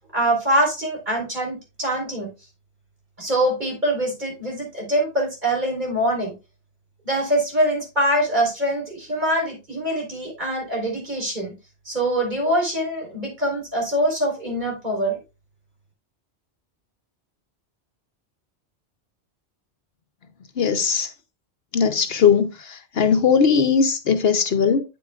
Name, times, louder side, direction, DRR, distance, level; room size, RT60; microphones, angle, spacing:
voice 1, 0.1-2.3 3.2-6.3 7.0-11.5 11.9-15.2, right 1 dB, 40° right, 4.3 m, -24 dB
voice 2, 20.6-21.1 21.7-24.8, left 6 dB, 65° left, 0.9 m, -19 dB
8.6 x 8.6 x 2.4 m
omnidirectional pair, 1.2 m